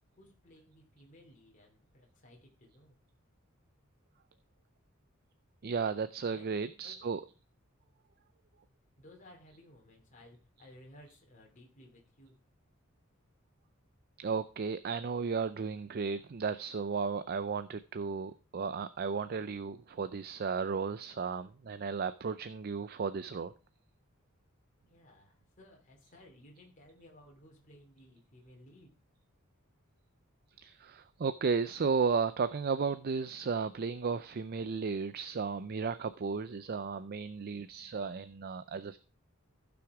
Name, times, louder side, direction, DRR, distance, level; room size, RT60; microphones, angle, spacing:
voice 1, 0.1-3.0 6.3-7.2 9.0-12.4 24.9-29.0, left 1 dB, 40° left, 0 dB, 2.8 m, -58 dB
voice 2, 5.6-7.2 14.2-23.5 30.6-39.0, right 5 dB, 45° right, 13 dB, 0.5 m, -34 dB
15.0 x 6.1 x 4.8 m, 0.35 s
head